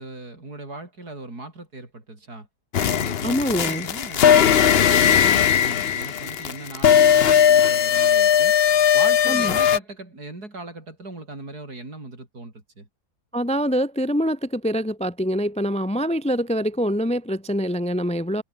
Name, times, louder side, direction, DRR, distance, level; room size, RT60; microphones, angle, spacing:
voice 1, 0.0-2.5 2.8-8.6 8.9-12.9, right 2 dB, 70° right, 6.6 m, -38 dB
sound 1, 2.7-9.8, left 8 dB, 50° left, 0.8 m, -18 dB
voice 2, 3.2-3.9 9.3-9.5 13.3-18.4, equal, 5° left, 0.8 m, -24 dB
omnidirectional pair, 1.7 m